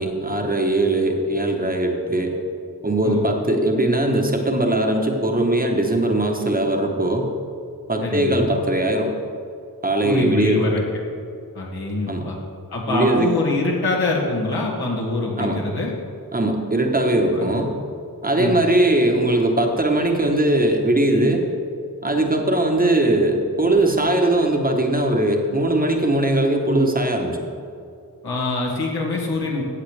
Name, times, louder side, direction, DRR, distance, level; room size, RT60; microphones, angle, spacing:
voice 1, 0.0-2.4 2.8-7.3 7.9-9.1 9.8-10.7 12.1-12.2 12.9-13.3 15.4-15.6 16.3-17.7 18.2-21.4 22.0-27.5, right 1 dB, 25° right, 2 dB, 1.0 m, -20 dB
voice 2, 8.0-8.5 10.0-10.8 11.5-12.4 12.7-15.9 17.3-17.4 18.4-18.6 28.2-29.6, left 2 dB, 80° left, -3 dB, 2.0 m, -24 dB
14.5 x 7.5 x 3.3 m, 2.4 s
wide cardioid pair, 110°, 38 cm